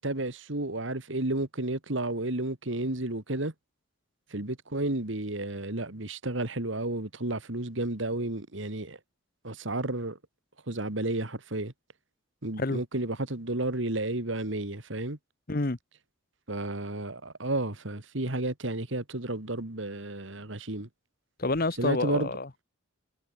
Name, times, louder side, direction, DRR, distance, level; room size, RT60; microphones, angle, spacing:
voice 1, 0.0-3.5 4.3-9.0 9.4-10.2 10.7-11.7 12.4-15.2 16.5-20.9 21.8-22.3, right 2 dB, 65° right, 2.3 m, -32 dB
voice 2, 21.4-22.5, left 2 dB, 45° left, 1.2 m, -28 dB
head